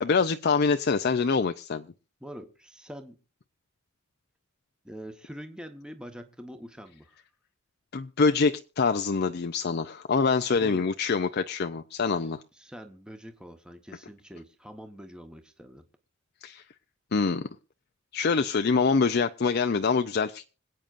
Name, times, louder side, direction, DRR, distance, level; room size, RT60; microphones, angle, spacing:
voice 1, 0.0-1.9 7.9-12.4 16.4-16.6 17.1-17.5 18.1-20.5, left 4 dB, 50° left, 0.5 m, -25 dB
voice 2, 2.2-3.1 4.8-7.1 10.6-10.8 12.5-15.8, equal, 5° right, 1.1 m, -44 dB
26.5 x 8.9 x 2.5 m
head